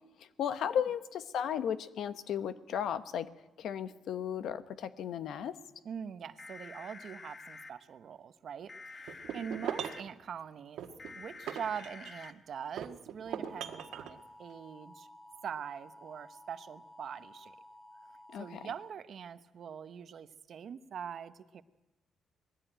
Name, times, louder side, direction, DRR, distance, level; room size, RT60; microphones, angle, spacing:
voice 1, 0.2-3.3 3.6-5.6 18.3-18.7, left 8 dB, 75° left, 12 dB, 1.0 m, -35 dB
voice 2, 5.8-10.9 11.1-15.1 15.4-17.6 18.4-21.6, right 7 dB, 60° right, 12 dB, 0.9 m, -43 dB
sound 1, 6.4-7.7 8.7-10.0 11.0-12.3 13.3-18.9, left 3 dB, 30° left, 1.5 m, -51 dB
sound 2, 9.1-10.1 10.8-12.3 12.8-14.1, right 9 dB, 85° right, 1.6 m, -40 dB
20.0 x 15.5 x 9.0 m, 1.1 s
cardioid pair, 110°, 0 cm